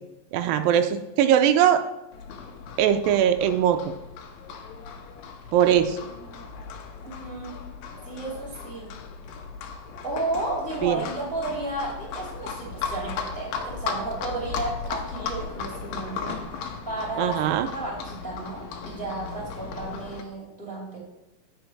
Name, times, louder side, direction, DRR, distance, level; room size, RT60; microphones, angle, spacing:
voice 1, 0.3-1.8 2.8-3.8 5.5-6.0 10.8-11.0 17.2-17.7, right 10 dB, 85° right, 8 dB, 2.2 m, -20 dB
Livestock farm animals working animals, 2.1-20.2, left 5 dB, 80° left, 2.5 m, -36 dB
voice 2, 6.0-6.5 7.0-7.6 8.0-8.9 10.0-16.4 16.8-21.0, right 2 dB, 5° left, -3 dB, 1.5 m, -33 dB
8.9 x 4.8 x 5.3 m, 0.94 s
omnidirectional pair, 4.1 m